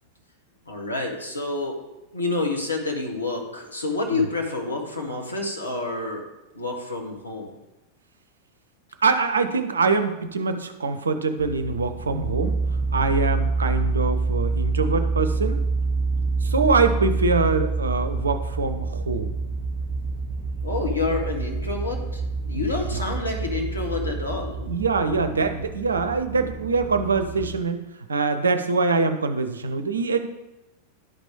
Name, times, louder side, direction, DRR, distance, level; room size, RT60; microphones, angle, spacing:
voice 1, 0.7-1.8 2.1-6.3 6.5-7.5 16.6-16.7 20.6-22.2 22.5-24.6, left 3 dB, 80° left, 1 dB, 1.4 m, -28 dB
voice 2, 9.0-12.6 12.9-15.6 16.4-19.3 22.6-22.7 22.9-23.1 24.6-27.8 28.1-30.3, right 4 dB, 75° right, 9 dB, 0.6 m, -24 dB
sound 1, 11.4-27.6, right 3 dB, 25° right, 1.2 m, -27 dB
11.5 x 4.9 x 3.7 m, 0.98 s
figure-of-eight pair, 90°, 0 cm